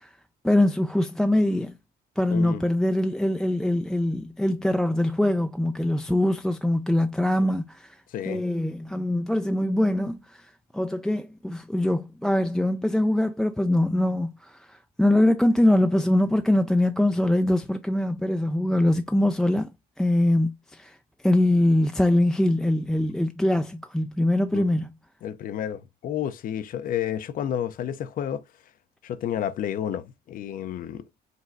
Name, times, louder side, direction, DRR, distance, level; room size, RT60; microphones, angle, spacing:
voice 1, 0.4-1.7 2.2-8.0 8.3-10.4 10.7-19.7 20.0-21.0 21.2-24.9, left 1 dB, 5° left, 0.3 m, -23 dB
voice 2, 2.3-2.6 7.4-7.5 8.1-8.4 24.5-24.7 25.2-28.4 29.0-31.0, left 10 dB, 55° left, 0.6 m, -31 dB
5.3 x 3.0 x 2.5 m
cardioid pair, 110°, 17 cm